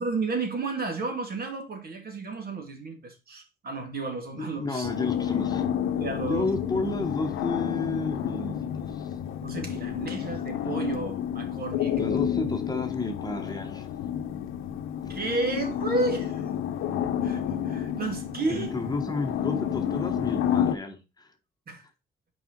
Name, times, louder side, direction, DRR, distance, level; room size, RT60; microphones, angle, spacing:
voice 1, 0.0-4.9 6.0-6.5 9.4-12.2 15.1-16.5 17.2-18.7 21.7-21.8, right 3 dB, 50° right, 2.4 m, -32 dB
voice 2, 4.4-5.7 6.2-9.1 12.0-13.9 18.5-21.3, left 3 dB, 20° left, 1.3 m, -32 dB
sound 1, 4.8-20.8, left 9 dB, 90° left, 0.8 m, -30 dB
5.8 x 5.0 x 4.6 m
cardioid pair, 90°, 20 cm